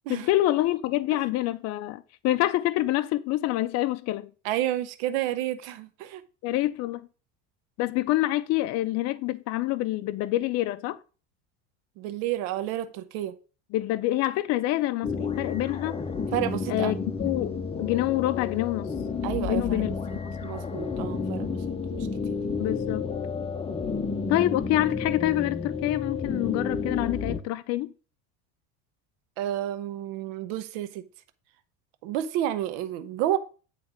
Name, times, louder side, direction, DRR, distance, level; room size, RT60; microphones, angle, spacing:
voice 1, 0.1-4.3 6.4-7.0 7.8-11.0 13.7-16.0 16.7-18.9 19.4-19.9 22.6-23.1 24.3-27.9, left 16 dB, 50° left, 0.5 m, -26 dB
voice 2, 4.4-6.2 12.0-13.3 16.3-16.9 19.2-19.9 20.4-21.6 21.9-22.4 29.4-31.0 32.0-33.4, right 13 dB, 75° right, 0.8 m, -30 dB
sound 1, 15.0-27.4, left 5 dB, 15° left, 0.9 m, -31 dB
8.7 x 3.3 x 5.0 m
supercardioid pair, 100°, 34 cm